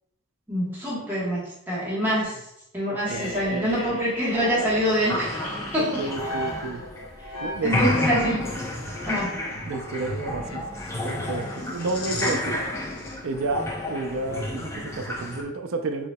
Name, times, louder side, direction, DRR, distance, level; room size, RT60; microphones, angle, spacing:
voice 1, 0.5-2.4 2.7-6.0 7.6-8.5 9.1-9.4, equal, 10° right, -8 dB, 1.2 m, -25 dB
voice 2, 2.9-4.0 5.8-6.8 7.4-7.7 9.6-12.6 13.2-16.1, right 3 dB, 70° right, 6 dB, 0.5 m, -31 dB
sound 1, 3.0-12.6 12.9-13.1, left 2 dB, 85° left, 0.8 m, -37 dB
sound 2, 4.3-7.3 7.6-15.4, left 1 dB, 15° left, 0.5 m, -30 dB
6.8 x 2.9 x 2.2 m, 0.80 s
head